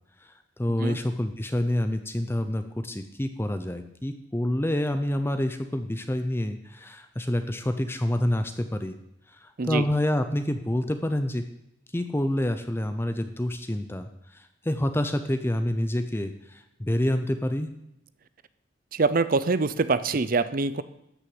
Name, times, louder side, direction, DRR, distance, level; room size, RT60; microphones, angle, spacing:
voice 1, 0.6-9.0 9.3-11.4 11.9-17.7, left 1 dB, 15° left, 8 dB, 0.6 m, -27 dB
voice 2, 18.9-20.8, right 4 dB, 50° right, 14 dB, 0.6 m, -24 dB
12.5 x 6.2 x 7.9 m, 0.79 s
head